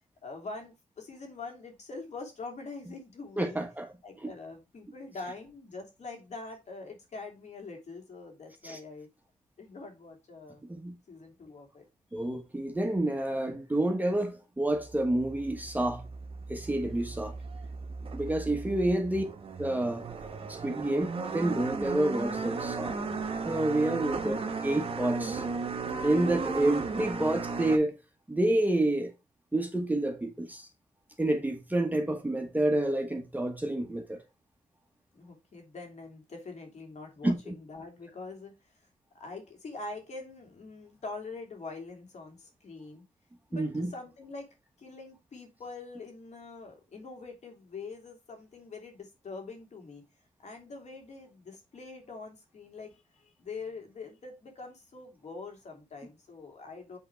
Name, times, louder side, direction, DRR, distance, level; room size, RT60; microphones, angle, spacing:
voice 1, 0.2-3.6 4.0-9.1 9.6-10.6 11.1-11.8 12.1-12.4 18.4-19.1 23.8-24.1 26.4-26.5 35.1-38.5 39.1-43.0 43.5-44.5 44.8-50.0 50.4-57.0, left 3 dB, 55° left, 2.7 m, -44 dB
voice 2, 3.4-3.9 4.2-4.3 8.6-8.8 10.7-10.9 12.1-16.0 16.5-17.3 18.1-19.2 19.6-20.1 20.5-23.0 23.4-25.4 26.0-27.9 28.3-29.1 29.5-30.7 31.2-34.2 37.2-37.3 43.5-43.9, right 1 dB, 10° right, 1.3 m, -29 dB
sound 1, 14.7-27.8, right 4 dB, 45° right, 1.1 m, -36 dB
7.8 x 3.7 x 4.5 m
cardioid pair, 90°, 14 cm